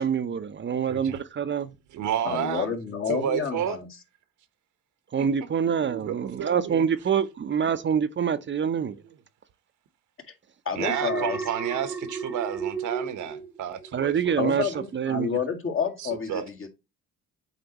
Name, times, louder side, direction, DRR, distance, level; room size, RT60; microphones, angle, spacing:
voice 1, 0.0-1.7 5.1-9.0 13.9-14.6 14.9-15.3, right 7 dB, 40° right, 0.7 m, -26 dB
voice 2, 0.9-1.2 1.9-2.7 3.1-3.8 5.2-5.3 5.8-6.8 10.7-14.7 16.0-16.5, right 9 dB, 80° right, 1.1 m, -31 dB
voice 3, 2.2-3.9 10.7-11.4 14.4-16.7, left 6 dB, 45° left, 1.8 m, -29 dB
Alarm, 10.8-14.1 14.5-14.8, right 5 dB, 5° right, 0.7 m, -34 dB
7.9 x 4.4 x 2.9 m
cardioid pair, 90°, 30 cm